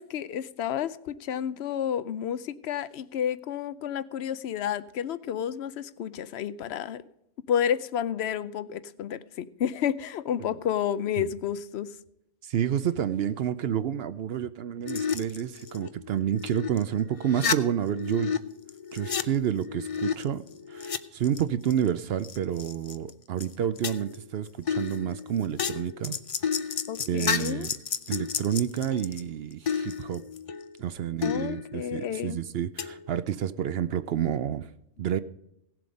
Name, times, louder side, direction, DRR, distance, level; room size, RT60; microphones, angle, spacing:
voice 1, 0.0-7.0 7.5-11.9 26.9-27.7 31.2-32.4, left 9 dB, 65° left, 16 dB, 0.8 m, -31 dB
voice 2, 12.4-18.4 18.9-26.2 27.0-27.7 28.1-30.2 30.8-34.7 35.0-35.2, right 9 dB, 65° right, 14 dB, 0.7 m, -29 dB
sound 1, 14.8-16.8 17.1-18.4 18.7-21.0 21.2-21.9 22.2-23.1 23.4-23.5 23.8-24.2 24.7-29.2 29.7-30.8 31.2-32.1 32.8-33.1, left 6 dB, 45° left, 0.4 m, -32 dB
16.5 x 7.6 x 5.2 m, 0.81 s
omnidirectional pair, 1.3 m